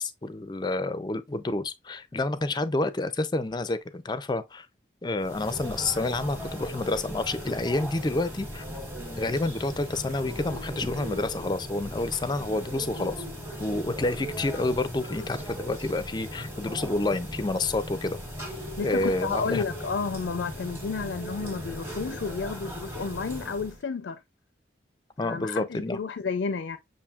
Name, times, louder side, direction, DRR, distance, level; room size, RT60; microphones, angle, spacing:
voice 1, 0.0-4.7 5.0-8.6 9.2-13.1 13.6-18.2 18.8-19.7 25.2-26.0, left 2 dB, 25° left, 0.4 m, -29 dB
sound 1, 5.2-23.8, equal, 10° right, 1.2 m, -38 dB
voice 2, 18.8-24.2 25.2-26.8, left 5 dB, 90° left, 0.4 m, -31 dB
7.0 x 2.7 x 2.3 m
head